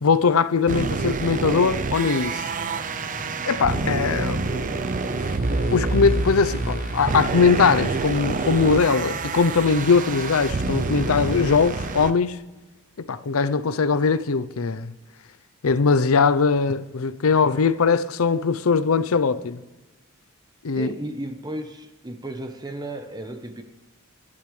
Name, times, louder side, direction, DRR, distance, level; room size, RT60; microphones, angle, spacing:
voice 1, 0.0-2.5 3.5-4.8 5.7-12.4 13.0-14.9 15.6-19.6 20.6-20.9, left 5 dB, 70° left, 0.6 m, -21 dB
sound 1, 0.7-12.1, right 3 dB, 40° right, 0.6 m, -27 dB
sound 2, 2.1-9.9, left 1 dB, 45° left, 3.2 m, -42 dB
sound 3, 5.2-12.1, left 1 dB, 85° left, 3.4 m, -42 dB
voice 2, 20.7-23.6, right 1 dB, 20° right, 0.9 m, -34 dB
17.5 x 11.5 x 3.3 m
head